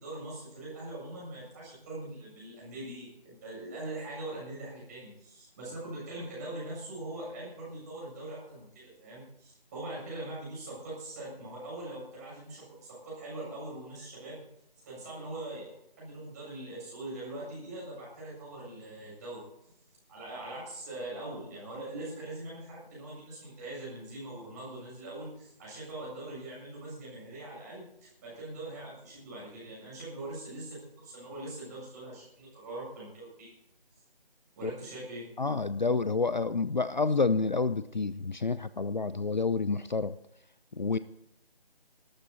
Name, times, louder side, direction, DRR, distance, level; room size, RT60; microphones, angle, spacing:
voice 1, 0.0-14.4 14.8-15.7 16.0-19.5 20.1-33.5 34.6-35.3, right 2 dB, 15° right, -6 dB, 7.2 m, -42 dB
voice 2, 35.4-40.2 40.7-41.0, left 4 dB, 50° left, 14 dB, 0.6 m, -29 dB
18.0 x 13.5 x 4.1 m, 0.78 s
figure-of-eight pair, 165°, 30 cm